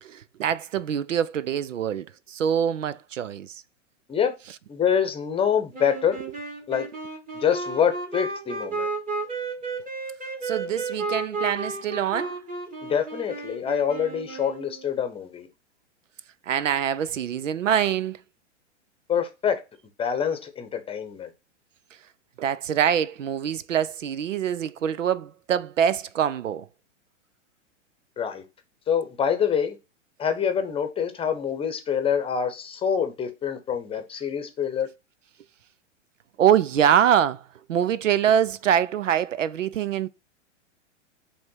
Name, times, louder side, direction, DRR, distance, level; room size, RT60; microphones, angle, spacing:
voice 1, 0.0-3.6 10.4-12.4 16.5-18.2 22.4-26.7 36.4-40.1, right 9 dB, 90° right, 0.6 m, -24 dB
voice 2, 4.7-6.2 6.7-6.9 7.3-8.9 12.8-15.5 19.1-19.6 20.0-21.3 28.2-28.4 28.9-29.8 30.2-34.9, left 7 dB, 15° left, 0.9 m, -25 dB
sound 1, 5.7-14.9, right 3 dB, 20° right, 2.0 m, -33 dB
5.1 x 3.4 x 5.4 m
hypercardioid pair, 115°, 37 cm